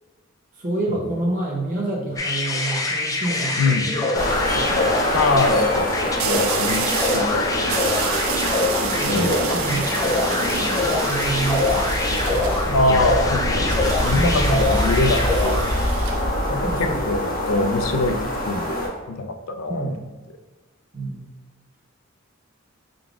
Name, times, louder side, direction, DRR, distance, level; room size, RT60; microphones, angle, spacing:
voice 1, 0.5-5.0 9.0-10.0 10.8-12.1 12.7-13.0 14.1-14.6 16.6-17.1 19.7-20.1 20.9-21.3, right 2 dB, 40° right, -2 dB, 0.7 m, -28 dB
sound 1, 2.2-16.0, left 2 dB, 15° left, 0.4 m, -25 dB
sound 2, 3.0-3.4 6.2-7.3 7.7-12.7 13.7-16.2, right 7 dB, 85° right, 0.4 m, -30 dB
voice 2, 3.6-3.9 5.1-5.9 6.2-8.1 9.0-9.5 12.7-15.6 16.5-16.7 17.1-18.2 18.5-19.9, left 2 dB, 80° left, 6 dB, 0.5 m, -24 dB
sound 3, 4.1-18.9, equal, 45° left, 1.4 m, -24 dB
4.7 x 3.8 x 2.4 m, 1.3 s
head